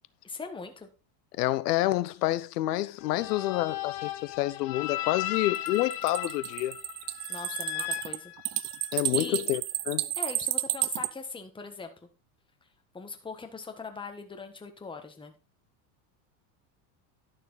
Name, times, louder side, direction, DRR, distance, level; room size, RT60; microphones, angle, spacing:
voice 1, 0.2-0.9 7.3-8.3 9.1-9.4 10.2-11.9 12.9-15.3, left 4 dB, 10° left, 1.4 m, -40 dB
voice 2, 1.4-6.8 8.9-9.6 9.9-10.1, left 16 dB, 90° left, 0.9 m, -28 dB
sound 1, 3.0-9.0, left 15 dB, 70° left, 1.6 m, -36 dB
sound 2, 5.5-11.1, right 16 dB, 45° right, 0.7 m, -31 dB
11.5 x 6.8 x 4.0 m
supercardioid pair, 120°, 46 cm